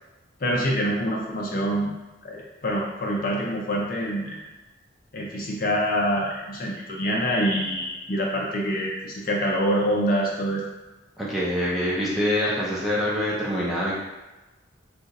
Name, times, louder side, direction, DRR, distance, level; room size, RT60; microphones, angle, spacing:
voice 1, 0.4-1.9 2.2-4.4 5.1-10.6, equal, 45° left, -2 dB, 0.5 m, -25 dB
voice 2, 11.2-13.9, equal, ahead, -7 dB, 0.5 m, -25 dB
2.6 x 2.4 x 3.9 m, 1.1 s
head